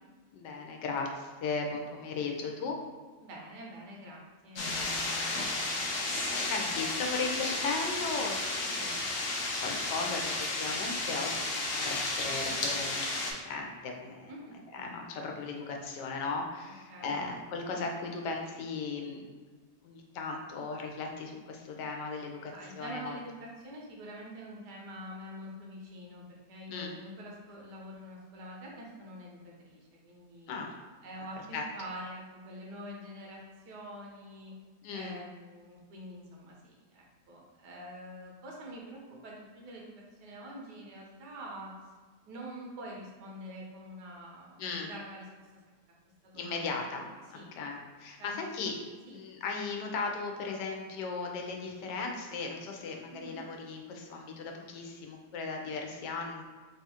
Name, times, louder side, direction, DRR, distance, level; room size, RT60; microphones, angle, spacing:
voice 1, 0.3-2.8 6.5-14.3 14.7-19.3 19.8-23.2 26.7-26.9 30.5-30.7 31.5-31.6 34.8-35.2 44.6-44.9 46.3-48.7 49.1-56.4, left 4 dB, 85° left, 2 dB, 1.3 m, -37 dB
voice 2, 3.2-6.0 6.7-6.9 8.1-8.2 8.6-8.9 14.3-14.6 16.7-17.2 22.5-30.5 31.0-34.6 34.9-41.7 42.2-45.5 46.2-46.8 47.3-47.5 48.2-48.4 49.1-49.2 53.1-53.4, equal, 75° right, -2 dB, 1.4 m, -46 dB
sound 1, 4.6-13.3, left 2 dB, 60° left, 0.7 m, -33 dB
3.5 x 2.4 x 4.2 m, 1.4 s
omnidirectional pair, 1.8 m